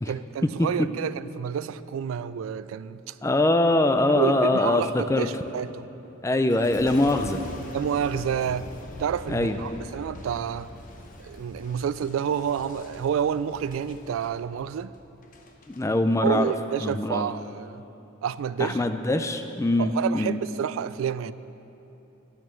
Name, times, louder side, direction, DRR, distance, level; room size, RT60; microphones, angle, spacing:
voice 1, 0.1-3.2 4.1-5.8 7.7-8.7 9.0-10.7 11.2-14.9 16.2-17.8 18.2-18.8 19.8-21.3, right 8 dB, 85° right, 0.3 m, -29 dB
voice 2, 3.2-5.3 6.2-7.4 9.3-9.6 15.7-16.5 16.8-17.3 18.6-20.4, left 2 dB, 15° left, 0.4 m, -23 dB
Boom, 6.5-15.8 16.4-16.8, left 1 dB, 40° left, 0.8 m, -43 dB
9.7 x 7.5 x 6.7 m
head